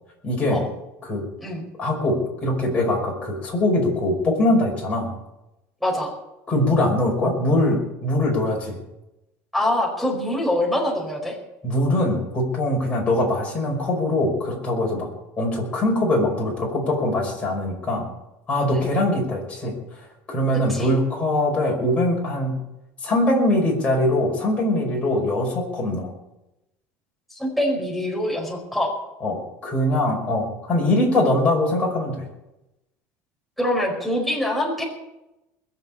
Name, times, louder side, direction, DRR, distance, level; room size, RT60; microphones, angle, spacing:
voice 1, 0.2-0.6 1.0-1.2 1.8-5.1 6.5-8.8 11.6-15.1 15.4-18.0 18.5-19.8 20.3-22.6 23.0-26.1 29.2-32.3, left 1 dB, 20° left, -1 dB, 5.3 m, -22 dB
voice 2, 5.8-6.1 9.5-11.4 18.7-18.9 20.5-20.9 27.3-28.9 33.6-34.8, left 1 dB, ahead, -1 dB, 4.8 m, -24 dB
21.0 x 7.5 x 8.7 m, 0.94 s
cardioid pair, 160°, 6 cm